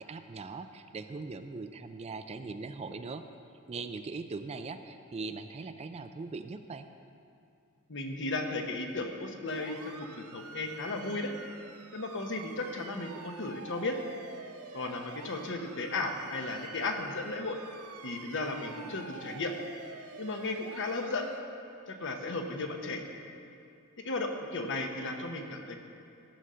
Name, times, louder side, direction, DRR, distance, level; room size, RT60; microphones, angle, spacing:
voice 1, 0.0-3.2 3.7-6.9, right 4 dB, 30° right, 9 dB, 0.4 m, -40 dB
voice 2, 7.9-11.3 11.9-14.0 14.7-17.6 18.0-19.5 20.2-21.3 21.9-23.1 24.0-25.8, left 2 dB, 60° left, 4 dB, 1.0 m, -35 dB
sound 1, 9.5-21.4, right 4 dB, 85° right, 0.7 m, -49 dB
13.0 x 6.4 x 5.6 m, 2.5 s
head